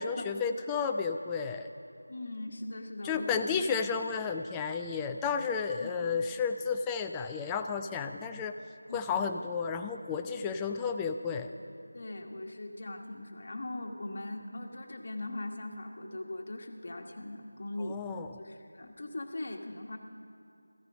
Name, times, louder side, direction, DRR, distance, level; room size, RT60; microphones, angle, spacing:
voice 1, 0.0-1.7 3.0-8.5 8.9-11.5 17.8-18.3, left 5 dB, 10° left, 6 dB, 0.4 m, -32 dB
voice 2, 2.1-3.6 5.8-6.0 8.9-9.0 11.9-18.0 18.4-20.0, left 2 dB, 40° left, 3 dB, 1.3 m, -40 dB
15.5 x 15.0 x 5.4 m, 2.5 s
figure-of-eight pair, 170°, 0 cm